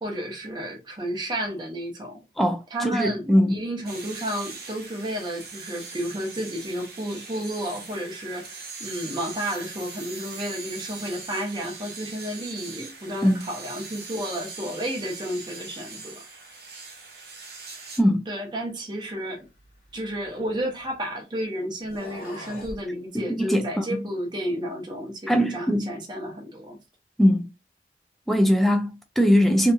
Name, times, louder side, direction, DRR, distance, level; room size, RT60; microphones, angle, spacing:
voice 1, 0.0-2.2 2.7-16.2 18.3-19.5 19.9-26.8, equal, 25° right, 0.7 m, -32 dB
voice 2, 2.4-3.6 12.8-12.9 13.2-13.5 18.0-18.3 23.1-24.1 25.3-25.9 27.2-27.5 28.3-29.7, equal, ahead, 0.4 m, -21 dB
sound 1, 3.8-18.0, right 4 dB, 60° right, 0.7 m, -41 dB
sound 2, 19.6-21.0 21.8-22.8, left 1 dB, 55° left, 1.1 m, -43 dB
2.8 x 2.6 x 2.3 m
head